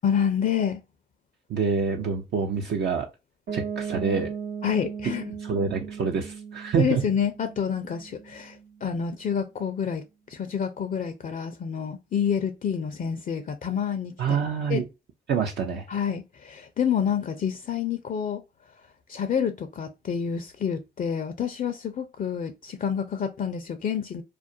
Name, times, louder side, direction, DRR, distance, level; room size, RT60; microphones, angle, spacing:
voice 1, 0.0-0.8 4.6-5.3 6.8-14.4 14.7-14.8 15.9-18.4 19.1-24.2, left 7 dB, 45° left, 0.4 m, -28 dB
voice 2, 1.5-3.1 3.5-4.3 5.4-7.0 14.2-14.8 15.3-15.8, right 6 dB, 65° right, 0.5 m, -26 dB
Piano, 3.5-9.2, right 6 dB, 85° right, 0.9 m, -37 dB
2.4 x 2.1 x 2.5 m
supercardioid pair, 45°, 19 cm